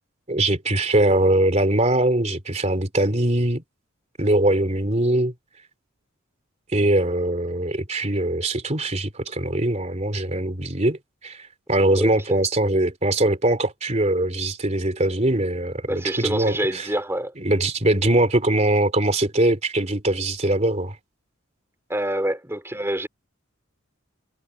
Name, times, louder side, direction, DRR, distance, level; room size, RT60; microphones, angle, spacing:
voice 1, 0.3-3.6 4.2-5.3 6.7-11.0 11.2-16.9 17.4-20.9, right 1 dB, 30° right, 3.2 m, -22 dB
voice 2, 15.9-17.3 21.9-23.1, right 1 dB, 10° right, 4.2 m, -26 dB
head